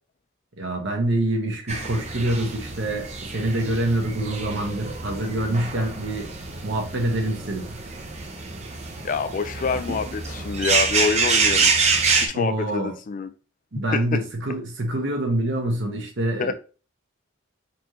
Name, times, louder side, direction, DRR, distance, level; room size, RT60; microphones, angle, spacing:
voice 1, 0.6-6.3 6.6-7.7 12.3-12.9 13.7-16.5, right 1 dB, 60° right, 1.2 m, -26 dB
sound 1, 1.7-12.3, right 4 dB, 35° right, 0.7 m, -26 dB
voice 2, 9.0-11.7 12.2-13.3 13.7-14.2 16.4-16.5, left 5 dB, 40° left, 0.3 m, -26 dB
4.2 x 3.2 x 2.8 m
head